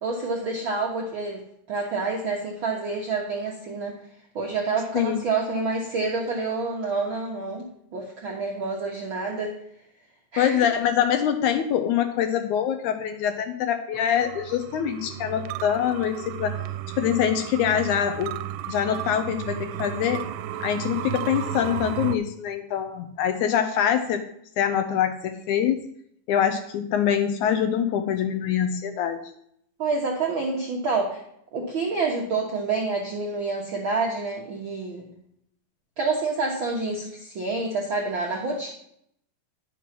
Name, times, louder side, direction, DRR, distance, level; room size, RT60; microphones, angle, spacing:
voice 1, 0.0-4.0 4.3-9.5 10.3-10.6 29.8-31.2 31.5-35.1 36.0-38.7, right 3 dB, 65° right, 0 dB, 1.2 m, -28 dB
voice 2, 10.4-16.6 17.0-18.4 18.7-20.2 20.6-24.2 24.6-25.8 26.3-29.2, left 9 dB, 75° left, 8 dB, 1.8 m, -24 dB
sound 1, 13.9-22.2, right 11 dB, 85° right, 2.2 m, -34 dB
10.5 x 6.0 x 5.9 m, 0.72 s
omnidirectional pair, 3.9 m